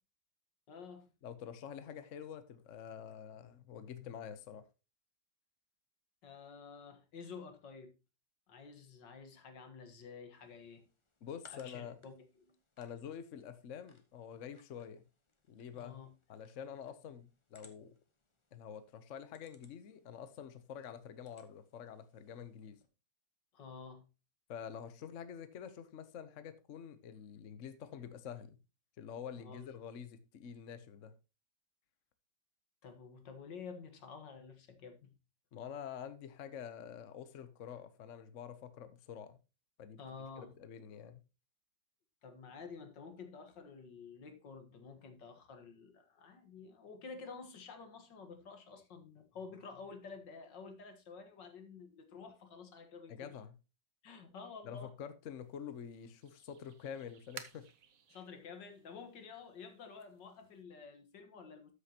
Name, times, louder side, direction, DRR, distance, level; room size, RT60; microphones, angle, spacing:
voice 1, 0.7-1.1 6.2-7.9 8.5-10.8 11.5-12.5 15.7-16.1 23.5-24.0 29.4-29.7 32.8-35.1 40.0-40.6 42.2-53.3 54.0-54.9 58.1-61.7, left 5 dB, 80° left, 2.1 m, -50 dB
voice 2, 1.2-4.6 11.2-12.0 12.8-15.0 15.5-16.0 16.3-17.9 18.5-22.8 24.5-28.6 29.0-31.1 35.5-39.4 39.8-40.0 40.4-41.2 53.1-53.6 54.6-57.7, left 8 dB, 50° left, 1.0 m, -47 dB
sound 1, 10.3-22.9, left 2 dB, 20° left, 0.8 m, -68 dB
sound 2, 55.4-60.6, right 8 dB, 55° right, 1.2 m, -57 dB
13.0 x 6.6 x 2.9 m
omnidirectional pair, 1.9 m